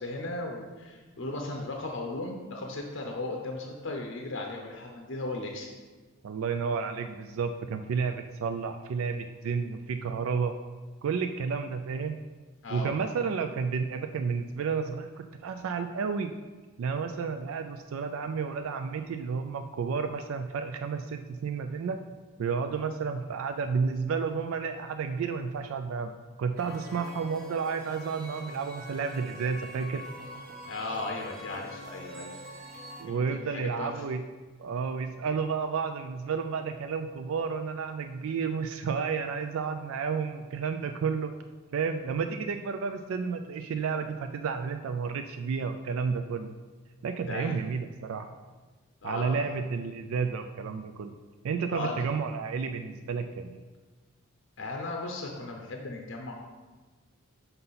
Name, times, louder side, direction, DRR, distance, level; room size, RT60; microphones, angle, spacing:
voice 1, 0.0-5.7 12.6-12.9 30.7-32.4 33.1-34.0 47.3-47.6 49.0-49.5 51.7-52.1 54.6-56.5, left 2 dB, 55° left, 1 dB, 0.6 m, -36 dB
voice 2, 6.2-10.5 11.0-12.2 12.7-16.3 16.8-22.0 22.4-26.1 26.4-30.0 33.0-34.2 34.6-41.3 41.7-46.5 47.0-48.3 49.0-51.1 51.4-53.6, right 5 dB, 75° right, 7 dB, 0.3 m, -31 dB
sound 1, 26.6-33.0, equal, 40° right, 1.1 m, -44 dB
5.6 x 5.5 x 4.0 m, 1.3 s
head